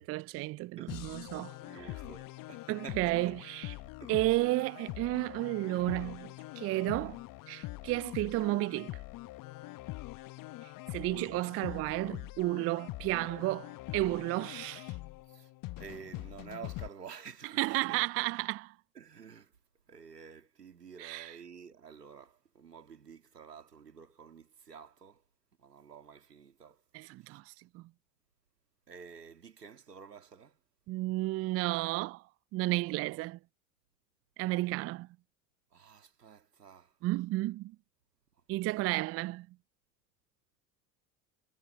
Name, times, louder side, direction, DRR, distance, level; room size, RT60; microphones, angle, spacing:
voice 1, 0.0-1.8 2.7-3.7 4.1-7.2 7.5-9.0 10.9-14.9 17.6-18.7 21.0-21.4 26.9-27.8 30.9-32.2 32.5-33.4 34.4-35.1 37.0-37.8 38.5-39.5, right 19 dB, 30° right, 0.5 m, -32 dB
voice 2, 0.8-1.2 1.5-3.4 4.0-4.1 15.3-15.5 15.8-18.0 18.9-19.5 19.9-25.2 25.6-26.8 27.2-27.4 28.9-30.6 32.9-33.2 35.7-36.9, right 6 dB, 85° right, 2.3 m, -50 dB
sound 1, 0.9-16.9, left 19 dB, 45° left, 1.1 m, -44 dB
figure-of-eight pair, 70°, 46 cm